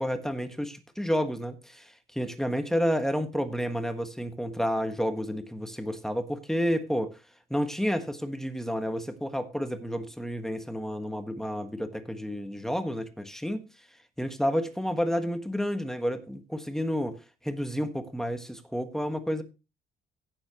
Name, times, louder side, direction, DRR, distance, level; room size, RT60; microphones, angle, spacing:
voice 1, 0.0-7.1 7.5-13.7 14.2-17.2 17.4-19.4, equal, ahead, 1.5 m, -30 dB
16.5 x 7.2 x 3.0 m
cardioid pair, 90°, 20 cm